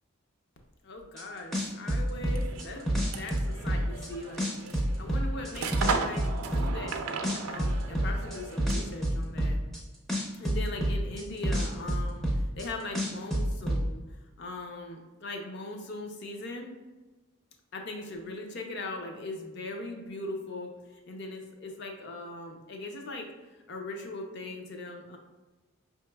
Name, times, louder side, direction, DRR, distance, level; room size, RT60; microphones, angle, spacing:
voice 1, 0.8-4.5 5.0-7.0 7.4-9.6 10.4-16.7 17.7-25.2, left 2 dB, 50° left, 3 dB, 0.5 m, -40 dB
sound 1, 1.2-1.3 1.5-4.1 4.4-6.9 7.2-9.8 10.1-12.7 12.9-13.8, right 1 dB, ahead, 0.4 m, -28 dB
sound 2, 2.2-9.0, right 4 dB, 85° right, 0.4 m, -37 dB
5.2 x 2.9 x 2.2 m, 1.2 s
head